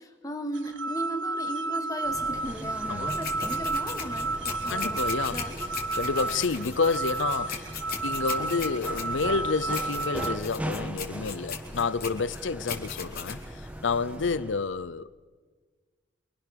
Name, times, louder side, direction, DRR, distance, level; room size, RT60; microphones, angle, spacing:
voice 1, 0.0-5.5, equal, 20° left, 2.3 m, -36 dB
sound 1, 0.5-10.3, right 3 dB, 70° right, 1.0 m, -32 dB
sound 2, 2.0-14.7, equal, 5° right, 1.6 m, -40 dB
sound 3, 3.1-14.2, left 6 dB, 50° left, 3.9 m, -39 dB
voice 2, 4.7-5.4 5.9-7.7 8.0-15.3, left 4 dB, 75° left, 0.7 m, -29 dB
28.0 x 25.0 x 6.9 m
head